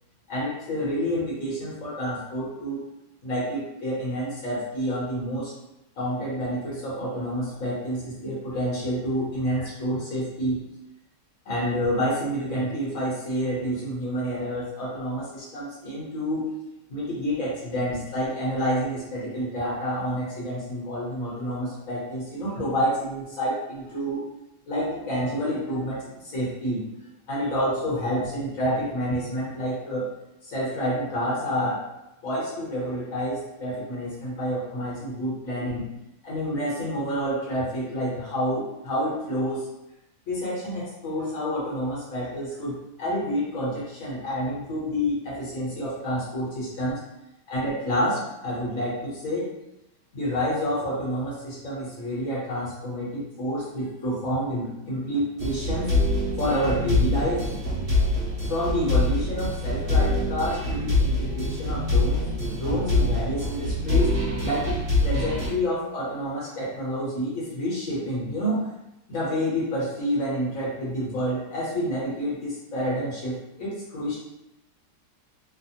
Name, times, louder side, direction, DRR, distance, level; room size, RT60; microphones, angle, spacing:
voice 1, 0.3-2.8 3.2-5.5 6.0-10.6 11.4-16.5 16.9-24.2 24.7-26.8 27.3-30.1 30.4-31.8 32.2-35.8 36.2-39.7 40.3-47.0 47.5-49.5 50.1-55.9 56.4-57.5 58.5-62.3 62.5-64.1 64.4-68.7 69.1-74.2, equal, 55° left, -6 dB, 1.2 m, -28 dB
sound 1, 55.4-65.5, left 2 dB, 40° right, 1.1 m, -25 dB
3.2 x 2.1 x 2.8 m, 0.89 s
omnidirectional pair, 1.9 m